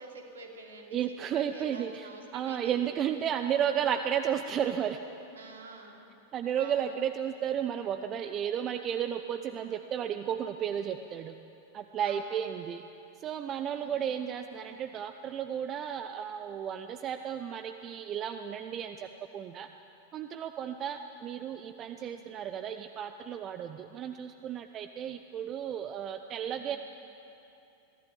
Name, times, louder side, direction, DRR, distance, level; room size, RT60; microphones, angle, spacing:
voice 1, 0.0-2.9 5.4-6.1 6.6-6.9 12.0-12.3 13.8-14.1 22.0-22.3 26.4-26.7, right 3 dB, 65° right, 2 dB, 2.9 m, -48 dB
voice 2, 0.9-5.0 6.3-11.3 11.7-12.8 13.2-19.7 20.1-26.8, right 9 dB, 30° right, 9 dB, 0.7 m, -33 dB
22.5 x 15.0 x 9.2 m, 2.9 s
figure-of-eight pair, 90°, 0 cm